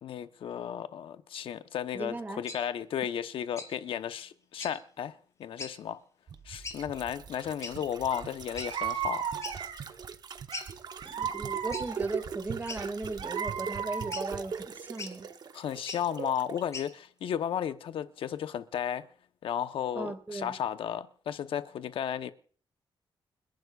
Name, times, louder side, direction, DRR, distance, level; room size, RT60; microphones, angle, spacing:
voice 1, 0.0-6.0 6.4-9.2 15.5-19.1 19.4-22.3, left 9 dB, 90° left, 1.0 m, -34 dB
voice 2, 1.9-2.4 11.0-15.3 19.9-20.5, right 2 dB, 20° right, 2.0 m, -37 dB
sound 1, 2.5-2.6 3.6-3.7 4.6-4.7 5.6-5.7 6.6-6.8 7.6-7.8 8.5-8.7 9.4-9.6 10.0-10.1 10.5-10.7 11.7-11.9 12.7-13.2 14.1-14.3 15.0-15.1 15.8-16.0 16.7-16.9, left 4 dB, 35° left, 5.0 m, -40 dB
sound 2, 6.3-16.6 16.9-17.0, right 6 dB, 50° right, 1.0 m, -41 dB
sound 3, 8.1-8.2 8.6-9.9 10.5-12.2 12.8-14.5, right 7 dB, 80° right, 2.9 m, -35 dB
30.0 x 12.0 x 2.4 m
wide cardioid pair, 145°, 9 cm